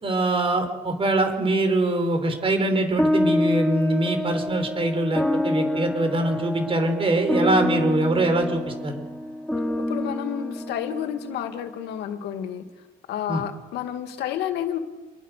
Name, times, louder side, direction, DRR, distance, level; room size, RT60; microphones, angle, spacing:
voice 1, 0.0-9.0 13.3-13.4, right 2 dB, 30° right, 6 dB, 5.6 m, -23 dB
sound 1, 3.0-11.7, left 1 dB, 5° left, 3.4 m, -27 dB
voice 2, 9.8-12.6 13.1-14.8, left 10 dB, 80° left, 7 dB, 2.4 m, -30 dB
28.0 x 23.0 x 6.8 m, 1.2 s
cardioid pair, 110°, 17 cm